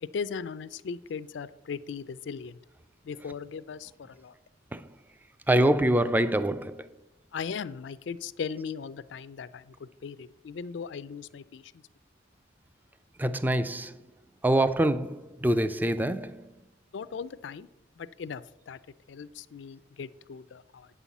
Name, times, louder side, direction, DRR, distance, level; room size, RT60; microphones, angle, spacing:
voice 1, 0.0-2.6 3.0-4.3 7.3-11.7 16.9-17.7 18.0-18.8 19.1-20.9, left 6 dB, 70° left, 0.4 m, -38 dB
voice 2, 5.5-6.9 13.2-14.0 14.4-16.5, right 1 dB, 10° right, 0.3 m, -25 dB
8.3 x 5.6 x 7.1 m
head